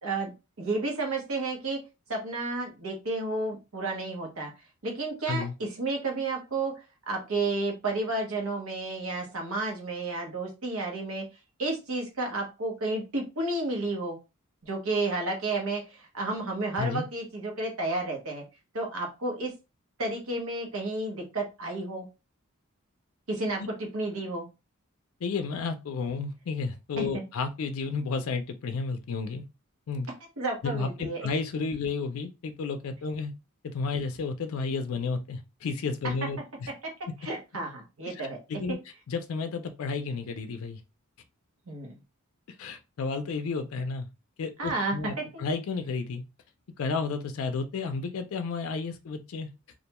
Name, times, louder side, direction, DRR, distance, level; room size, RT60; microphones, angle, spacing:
voice 1, 0.0-0.3 0.6-1.8 2.1-4.5 4.8-6.7 7.1-11.3 11.6-14.2 14.6-18.4 18.7-19.5 20.0-22.1 23.3-24.5 27.0-27.2 30.4-31.3 36.0-36.1 37.2-38.4 38.7-38.8 41.7-42.0 44.6-45.4, right 2 dB, 80° right, 0.9 m, -31 dB
voice 2, 25.2-29.4 29.9-30.1 30.6-33.3 33.6-36.7 38.1-38.8 39.1-40.8 42.6-44.1 44.4-46.2 46.8-49.5, left 4 dB, 80° left, 0.4 m, -32 dB
2.4 x 2.2 x 2.9 m
head